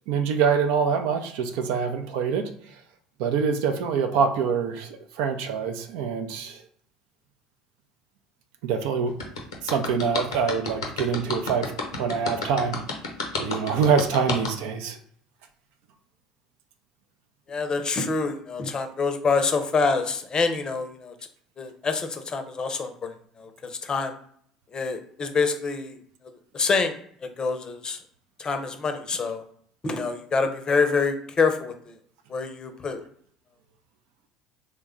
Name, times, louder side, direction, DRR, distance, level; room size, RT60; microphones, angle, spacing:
voice 1, 0.1-2.5 3.2-6.6 8.6-9.2 9.6-11.7 12.0-12.8 13.4-15.0, right 6 dB, 65° right, 6 dB, 0.4 m, -25 dB
sound 1, 9.2-14.5, left 4 dB, 80° left, 0.6 m, -30 dB
voice 2, 17.5-21.1 21.6-24.1 24.7-26.0 26.5-27.0 27.4-28.0 28.4-29.4 29.8-31.9 32.3-33.0, left 4 dB, 30° left, 7 dB, 0.6 m, -26 dB
3.2 x 2.2 x 3.6 m, 0.62 s
hypercardioid pair, 65°, 3 cm